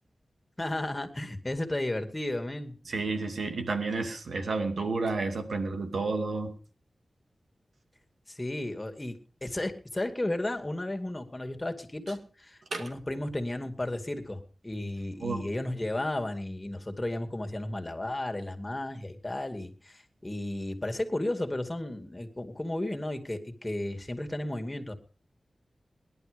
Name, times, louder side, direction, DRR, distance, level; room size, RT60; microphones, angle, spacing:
voice 1, 0.6-2.8 8.3-24.9, left 1 dB, 20° left, 5 dB, 2.3 m, -34 dB
voice 2, 2.9-6.5 12.7-12.9 15.2-15.5, right 3 dB, 85° right, 6 dB, 2.4 m, -31 dB
20.0 x 11.0 x 5.2 m, 0.40 s
wide cardioid pair, 105°, 0 cm